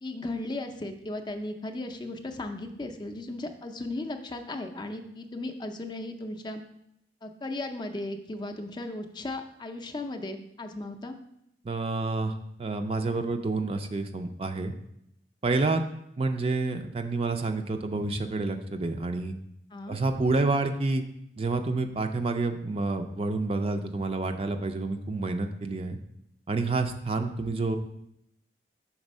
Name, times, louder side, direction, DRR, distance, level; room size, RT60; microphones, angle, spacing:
voice 1, 0.0-6.6 7.2-11.2 19.7-20.0, left 2 dB, 25° left, 6 dB, 0.5 m, -36 dB
voice 2, 11.6-12.3 12.6-14.7 15.4-15.8 16.2-19.4 19.9-21.0 21.4-26.0 26.5-27.8, right 3 dB, 35° right, 6 dB, 0.4 m, -28 dB
6.0 x 4.1 x 5.3 m, 0.77 s
head